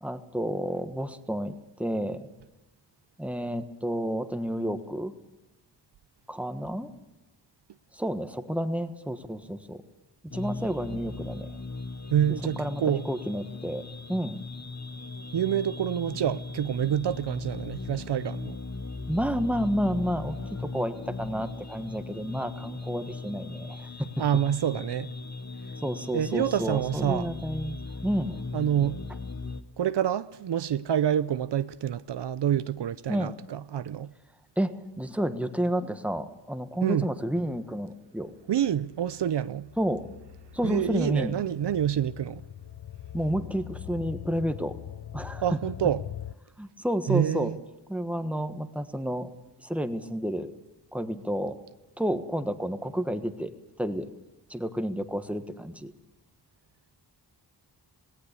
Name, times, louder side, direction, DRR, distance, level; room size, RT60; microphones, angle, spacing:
voice 1, 0.0-2.3 3.2-5.1 6.3-6.9 7.9-9.8 10.2-11.5 12.6-13.8 14.1-14.4 19.1-24.2 25.8-28.4 33.1-33.3 34.6-38.3 39.8-40.1 40.5-41.3 43.1-44.8 45.1-45.6 46.6-47.5 47.9-49.3 49.6-50.5 50.9-51.6 52.0-53.5 53.8-54.1 54.5-55.9, equal, 5° right, 1.4 m, -30 dB
sound 1, 10.3-29.6, left 3 dB, 40° left, 1.1 m, -38 dB
voice 2, 12.1-13.0 15.3-18.6 24.2-25.1 26.1-27.3 28.5-29.0 29.8-34.1 36.8-37.1 38.5-39.7 40.6-42.4 45.4-46.0 47.1-47.6, right 10 dB, 75° right, 0.6 m, -27 dB
sound 2, 38.7-46.3, left 11 dB, 55° left, 0.6 m, -42 dB
18.0 x 17.5 x 8.3 m
wide cardioid pair, 75°, 42 cm